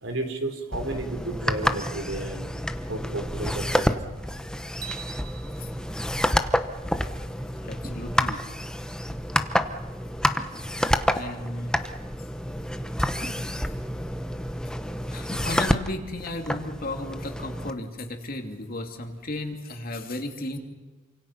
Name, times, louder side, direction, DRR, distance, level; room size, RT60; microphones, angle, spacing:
voice 1, 0.0-2.5 2.9-4.2, right 2 dB, 75° right, 5 dB, 3.9 m, -32 dB
sound 1, 0.7-17.7, equal, 5° left, 0.9 m, -28 dB
sound 2, 4.8-7.1, right 9 dB, 45° right, 1.3 m, -44 dB
sound 3, 5.0-14.3, right 1 dB, 25° right, 4.8 m, -52 dB
voice 2, 7.6-8.4 11.1-11.7 15.1-20.6, left 1 dB, 45° left, 4 dB, 2.6 m, -34 dB
28.5 x 26.0 x 5.9 m, 1.3 s
head